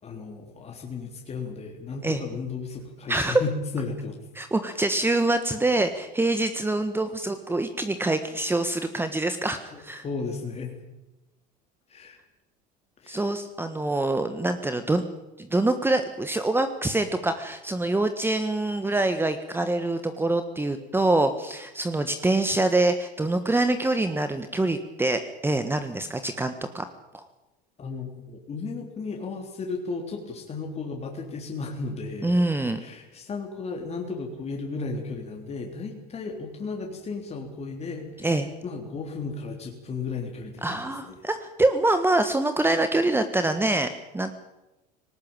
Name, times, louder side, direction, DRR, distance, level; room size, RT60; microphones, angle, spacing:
voice 1, 0.0-4.2 9.7-10.7 11.9-12.2 13.0-13.3 27.8-32.4 32.8-41.2, left 4 dB, 30° left, 1 dB, 3.5 m, -34 dB
voice 2, 3.1-3.4 4.3-10.0 13.1-15.0 15.4-26.9 27.1-27.2 32.2-32.8 38.2-38.5 40.6-44.3, right 2 dB, 10° right, 9 dB, 1.5 m, -25 dB
19.0 x 18.5 x 8.9 m, 0.99 s
hypercardioid pair, 85°, 21 cm